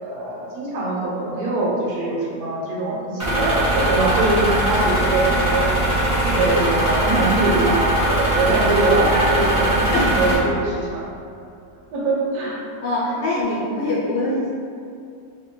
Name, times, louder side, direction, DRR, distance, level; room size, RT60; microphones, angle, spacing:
voice 1, 0.0-5.7 6.2-11.1 11.9-12.6, right 2 dB, 70° right, -5 dB, 1.1 m, -22 dB
sound 1, 3.2-10.4, right 1 dB, 20° right, 0.5 m, -20 dB
voice 2, 9.9-10.4 12.8-14.5, left 1 dB, 80° left, -7 dB, 1.1 m, -23 dB
2.7 x 2.2 x 2.9 m, 2.4 s
omnidirectional pair, 1.8 m